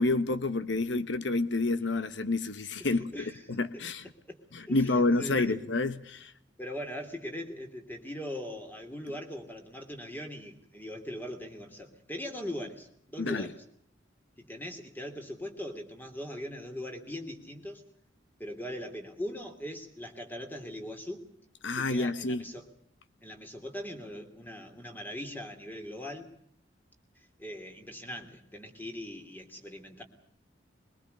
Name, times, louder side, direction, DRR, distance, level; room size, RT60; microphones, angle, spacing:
voice 1, 0.0-4.1 4.5-6.3 13.2-13.5 21.6-22.4, left 2 dB, 70° left, 1.1 m, -29 dB
voice 2, 2.8-3.4 3.7-3.8 4.3-4.4 4.7-5.6 6.6-13.5 14.4-17.8 18.4-21.2 21.7-22.7 23.2-26.3 27.1-30.0, left 1 dB, 10° left, 3.1 m, -40 dB
22.5 x 22.0 x 6.7 m
head